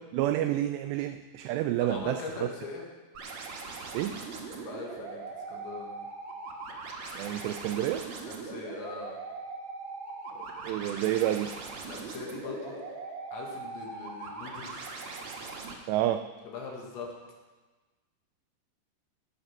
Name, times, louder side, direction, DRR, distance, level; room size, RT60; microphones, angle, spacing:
voice 1, 0.1-2.2 3.9-4.2 7.1-8.1 10.6-11.5 15.9-16.3, right 13 dB, 90° right, 9 dB, 2.4 m, -29 dB
voice 2, 1.8-2.9 4.4-6.1 8.3-9.1 11.8-12.8 13.3-14.9 16.5-17.1, left 5 dB, 75° left, -1 dB, 3.9 m, -41 dB
sound 1, 3.1-15.7, right 4 dB, 65° right, 1.7 m, -40 dB
17.5 x 6.6 x 5.9 m, 1.3 s
omnidirectional pair, 5.4 m